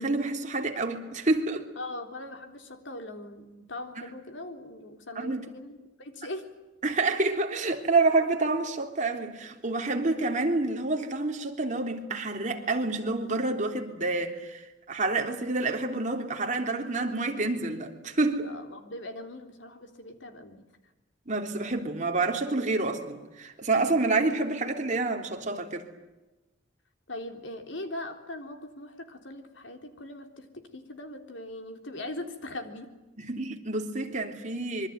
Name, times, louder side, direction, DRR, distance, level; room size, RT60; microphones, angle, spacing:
voice 1, 0.0-1.6 5.1-5.4 6.8-18.5 21.2-25.9 33.2-34.9, right 3 dB, 40° right, 3 dB, 3.4 m, -28 dB
voice 2, 1.8-6.5 18.4-20.6 27.1-32.9, left 1 dB, 75° left, 5 dB, 3.7 m, -40 dB
26.0 x 24.0 x 9.5 m, 1.1 s
head